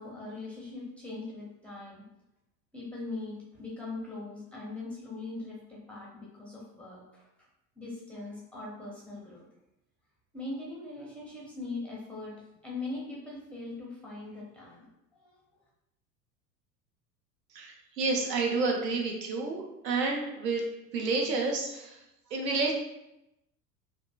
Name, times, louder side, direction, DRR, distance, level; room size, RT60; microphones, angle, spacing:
voice 1, 0.0-2.1 2.7-7.3 7.8-9.4 10.3-14.9 15.1-15.4, left 2 dB, 5° left, -6 dB, 0.4 m, -41 dB
voice 2, 17.5-22.0 22.3-22.7, right 3 dB, 80° right, 1 dB, 0.7 m, -30 dB
2.8 x 2.3 x 2.2 m, 0.88 s
figure-of-eight pair, 80°, 49 cm